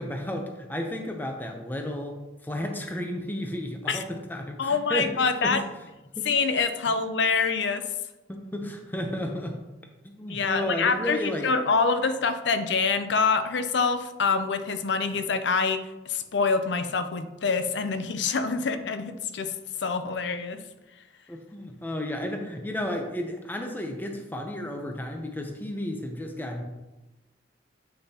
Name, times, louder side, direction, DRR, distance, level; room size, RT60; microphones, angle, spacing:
voice 1, 0.0-5.6 6.2-6.3 8.3-9.6 10.0-11.5 21.3-26.6, left 1 dB, 10° left, 3 dB, 0.6 m, -33 dB
voice 2, 4.6-5.6 6.2-7.9 10.3-19.5 19.8-20.6, left 4 dB, 80° left, 9 dB, 0.6 m, -26 dB
8.0 x 6.5 x 2.8 m, 1.0 s
head